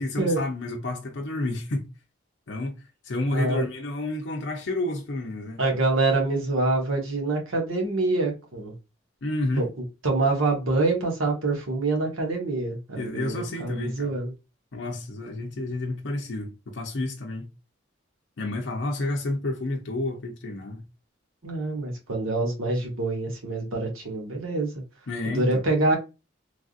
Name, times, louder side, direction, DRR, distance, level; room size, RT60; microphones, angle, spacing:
voice 1, 0.0-1.9 2.5-2.7 3.0-5.6 9.2-9.7 13.0-14.1 14.7-17.5 18.4-20.8 25.1-25.6, left 2 dB, 65° left, 0.5 m, -30 dB
voice 2, 3.3-3.6 5.6-8.7 9.6-9.7 10.0-14.3 21.4-24.7 25.3-26.0, right 2 dB, 90° right, 1.1 m, -25 dB
3.3 x 2.5 x 2.4 m
head